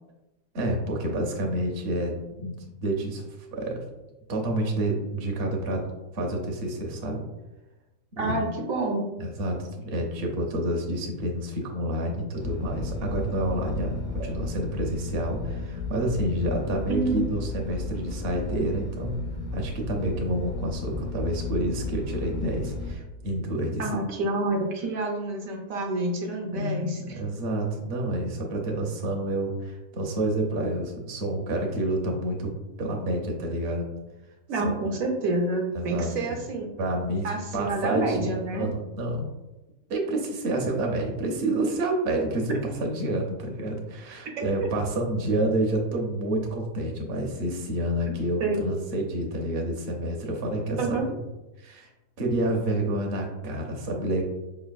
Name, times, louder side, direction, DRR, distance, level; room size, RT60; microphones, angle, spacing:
voice 1, 0.5-3.2 3.5-3.8 4.3-5.9 6.1-7.2 8.1-8.5 9.2-19.2 19.5-23.9 26.4-32.5 32.8-33.9 34.6-34.9 35.7-36.4 36.8-39.3 39.9-51.1 51.6-51.9 52.2-54.2, right 1 dB, 55° right, 1 dB, 0.7 m, -29 dB
voice 2, 8.2-9.1 14.2-14.3 16.9-17.2 23.8-27.2 34.5-36.7 37.2-38.7 48.4-48.7 50.8-51.0, right 2 dB, 70° right, 1 dB, 1.1 m, -28 dB
sound 1, 12.4-23.0, left 3 dB, 60° left, 0.4 m, -34 dB
4.9 x 3.2 x 2.2 m, 1.0 s
omnidirectional pair, 1.6 m